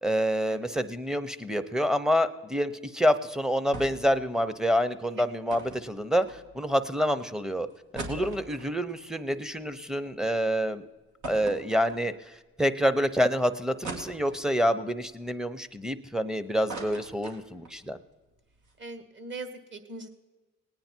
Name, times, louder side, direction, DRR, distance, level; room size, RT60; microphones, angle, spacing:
voice 1, 0.0-6.3 6.5-7.7 7.9-10.9 11.2-12.1 12.6-18.0, equal, ahead, 9 dB, 0.8 m, -27 dB
sound 1, 3.7-4.2 4.4-4.5 5.5-6.8 7.3-7.4 7.7-10.1 10.5-10.6 11.2-12.4 12.9-13.0 13.8-14.7 15.2-16.2 16.5-17.8 18.2-18.3 18.5-18.7, right 3 dB, 75° right, 2.4 m, -41 dB
voice 2, 18.8-20.1, right 2 dB, 40° right, 9 dB, 1.8 m, -41 dB
19.0 x 9.5 x 4.5 m, 1.2 s
cardioid pair, 90°, 30 cm